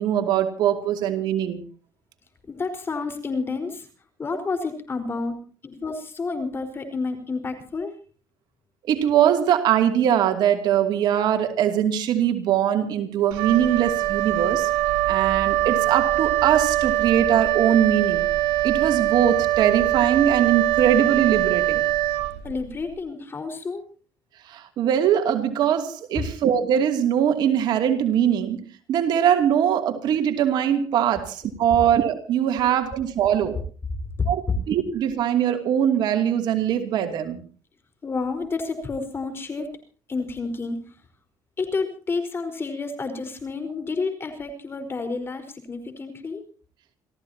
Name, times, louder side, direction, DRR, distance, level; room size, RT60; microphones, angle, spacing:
voice 1, 0.0-1.6 8.9-14.7 15.1-18.3 18.6-21.8 24.4-33.6 34.3-37.4, right 9 dB, 65° right, 6 dB, 2.7 m, -22 dB
voice 2, 2.5-3.9 4.2-7.9 22.4-23.8 34.2-34.3 38.0-39.7 40.1-41.0 41.6-46.4, left 4 dB, 30° left, 7 dB, 4.6 m, -30 dB
Wind instrument woodwind instrument, 13.3-22.8, right 15 dB, 85° right, 2.4 m, -23 dB
28.5 x 14.5 x 2.9 m, 0.40 s
cardioid pair, 110°, 8 cm